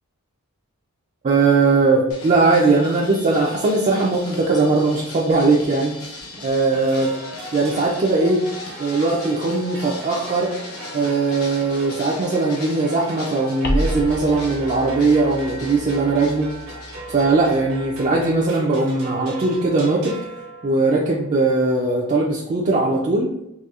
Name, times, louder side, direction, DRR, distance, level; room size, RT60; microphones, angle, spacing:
voice 1, 1.2-5.9 6.4-7.1 7.5-8.4 8.8-10.5 10.9-16.5 17.1-20.1 20.6-23.3, right 3 dB, 35° right, -3 dB, 0.4 m, -19 dB
sound 1, 2.1-17.6, left 2 dB, 75° left, 0.8 m, -38 dB
sound 2, 6.7-21.2, right 2 dB, 80° right, 1.1 m, -39 dB
sound 3, 13.6-18.5, equal, 45° left, 0.4 m, -31 dB
4.1 x 2.6 x 2.4 m, 0.83 s
head